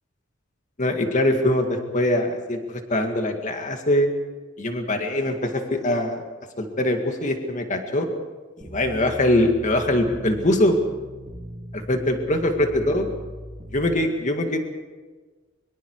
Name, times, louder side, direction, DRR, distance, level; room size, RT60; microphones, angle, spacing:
voice 1, 0.8-4.1 4.6-6.2 6.6-8.1 8.7-10.8 11.7-13.1 13.7-14.6, left 1 dB, 40° left, 4 dB, 2.1 m, -22 dB
sound 1, 8.6-13.9, equal, 30° right, 3.9 m, -39 dB
24.0 x 22.5 x 4.8 m, 1.3 s
head